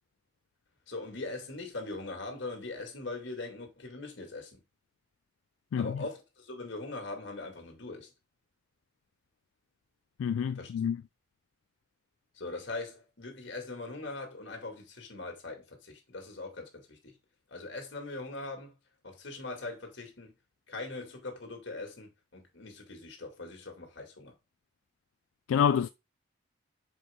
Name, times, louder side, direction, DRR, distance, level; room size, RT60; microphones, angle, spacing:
voice 1, 0.9-4.6 5.8-8.1 10.6-10.7 12.4-17.1 17.5-18.7 19.0-20.4 20.7-24.3, left 3 dB, 65° left, 2.2 m, -41 dB
voice 2, 10.2-11.0 25.5-25.9, left 8 dB, 85° left, 0.3 m, -27 dB
6.3 x 4.8 x 3.6 m
head